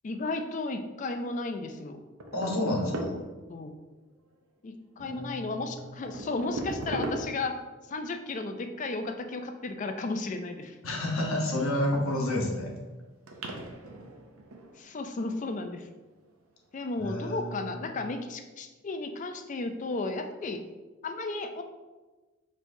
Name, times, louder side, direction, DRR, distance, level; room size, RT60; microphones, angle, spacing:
voice 1, 0.0-2.0 3.5-3.7 4.6-7.6 7.9-10.7 14.8-15.9 16.7-20.6 21.0-21.6, left 3 dB, 35° left, 6 dB, 0.4 m, -34 dB
sound 1, 2.2-3.6 5.1-5.2 5.8-7.7 11.5-12.2 12.8-12.9 13.3-15.3 16.2-16.5 17.3-17.4 17.9-18.0, right 2 dB, 85° right, 0.7 m, -38 dB
voice 2, 2.3-3.1 5.0-5.9 10.8-12.7 17.0-17.8, left 1 dB, 75° left, -1 dB, 1.0 m, -30 dB
6.2 x 3.1 x 2.6 m, 1.2 s
head